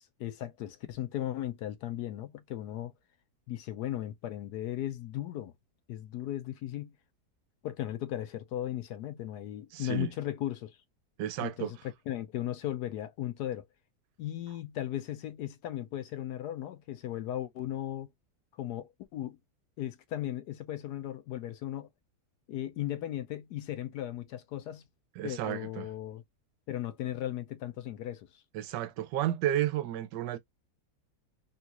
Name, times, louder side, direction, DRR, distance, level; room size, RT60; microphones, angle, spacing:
voice 1, 0.0-2.9 3.5-5.5 5.9-6.9 7.6-10.8 11.4-11.8 12.1-13.7 14.2-18.1 18.6-19.4 19.8-21.9 22.5-24.9 25.2-26.2 26.7-28.4, left 12 dB, 75° left, 1.1 m, -36 dB
voice 2, 9.7-10.1 11.2-11.7 25.2-25.9 28.5-30.4, right 12 dB, 90° right, 1.2 m, -32 dB
3.8 x 2.4 x 2.8 m
omnidirectional pair, 1.8 m